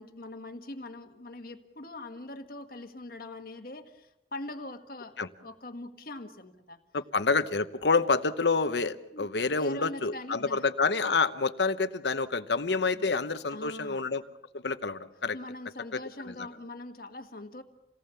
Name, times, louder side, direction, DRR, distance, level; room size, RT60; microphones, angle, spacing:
voice 1, 0.0-6.8 9.1-10.6 12.9-13.0 13.5-14.1 15.3-17.6, left 2 dB, 55° left, 7 dB, 1.4 m, -42 dB
voice 2, 6.9-14.2 14.5-15.3 15.9-16.0 16.3-16.4, left 4 dB, 80° left, 11 dB, 1.0 m, -28 dB
28.5 x 18.5 x 7.0 m, 0.95 s
head